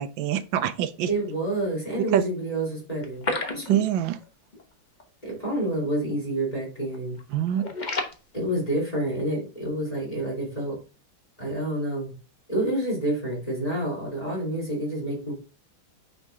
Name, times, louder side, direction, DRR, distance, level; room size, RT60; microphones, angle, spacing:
voice 1, 0.0-1.1 2.1-2.3 3.7-4.2 7.3-7.7, right 10 dB, 85° right, 1.4 m, -25 dB
voice 2, 1.1-3.8 5.2-7.2 8.3-10.8 11.4-12.1 12.5-15.3, right 1 dB, 20° left, 3.1 m, -28 dB
sound 1, 3.0-4.2 4.5-4.6 5.0-5.1 5.7-5.9 6.2-6.6 6.9-8.2, left 3 dB, 35° left, 0.7 m, -31 dB
8.9 x 3.9 x 3.5 m
omnidirectional pair, 2.1 m